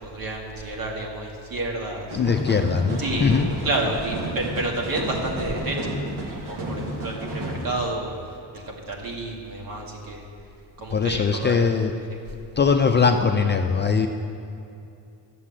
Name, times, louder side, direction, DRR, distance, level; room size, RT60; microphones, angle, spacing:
voice 1, 0.0-2.2 3.0-3.4 3.6-6.0 6.4-8.1 8.5-10.2 10.8-11.7, right 2 dB, 50° right, -1 dB, 2.1 m, -30 dB
voice 2, 2.1-3.5 10.9-11.9 12.6-14.1, left 5 dB, 25° left, 4 dB, 0.5 m, -21 dB
sound 1, 2.1-7.6, right 1 dB, 65° right, 1.8 m, -32 dB
11.5 x 7.6 x 7.3 m, 2.7 s
cardioid pair, 130°, 42 cm